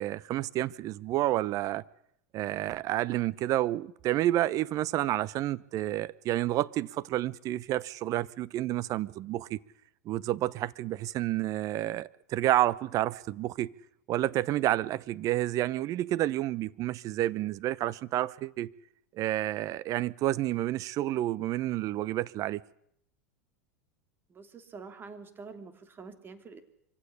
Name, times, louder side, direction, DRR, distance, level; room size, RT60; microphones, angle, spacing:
voice 1, 0.0-1.8 2.3-9.6 10.0-13.7 14.1-18.7 19.1-22.6, right 14 dB, 45° right, 0.9 m, -30 dB
voice 2, 24.3-26.6, right 4 dB, 25° right, 3.3 m, -46 dB
24.5 x 16.0 x 9.9 m
hypercardioid pair, 90°, 8 cm